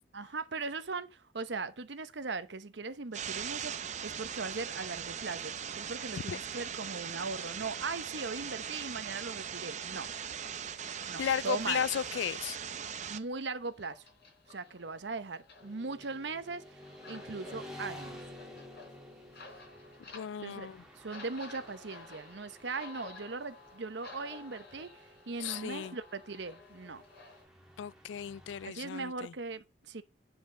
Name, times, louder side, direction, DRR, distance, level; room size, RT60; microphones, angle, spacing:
voice 1, 0.1-10.1 11.1-11.8 13.1-14.0 14.5-16.8 17.1-18.2 20.4-20.7 21.0-24.9 25.3-27.0 28.6-30.0, right 4 dB, 65° right, 0.8 m, -39 dB
sound 1, 3.1-13.2, right 8 dB, 40° right, 0.6 m, -40 dB
sound 2, 9.9-27.4, left 3 dB, 60° left, 4.2 m, -53 dB
voice 2, 11.2-12.6 20.1-20.8 25.4-26.0 27.8-29.3, left 8 dB, 80° left, 0.3 m, -35 dB
Motorcycle / Traffic noise roadway noise, 15.6-28.7, equal, 5° right, 1.7 m, -52 dB
9.5 x 5.0 x 5.0 m
head